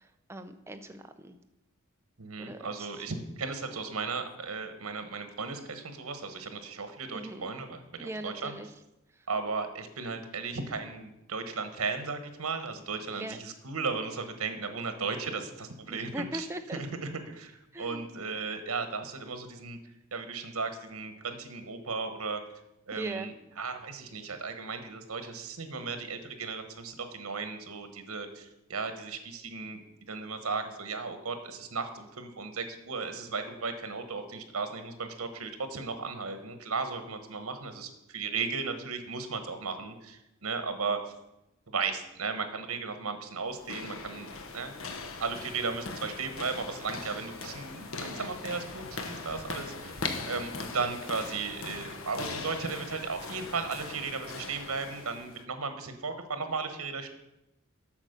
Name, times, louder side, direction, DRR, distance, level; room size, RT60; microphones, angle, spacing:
voice 1, 0.0-1.4 2.4-2.9 7.1-7.5 8.0-8.7 13.2-13.4 15.9-16.8 17.7-18.1 22.9-23.3, right 1 dB, 10° right, 8 dB, 0.6 m, -40 dB
voice 2, 2.2-8.5 9.3-16.5 16.7-19.8 20.1-22.4 22.9-23.3 23.6-29.8 30.1-41.0 41.7-44.7 45.2-49.9 50.3-57.1, right 4 dB, 80° right, 8 dB, 1.2 m, -35 dB
sound 1, 43.5-55.4, left 3 dB, 70° left, 0.9 m, -40 dB
8.4 x 6.2 x 6.6 m, 0.90 s
head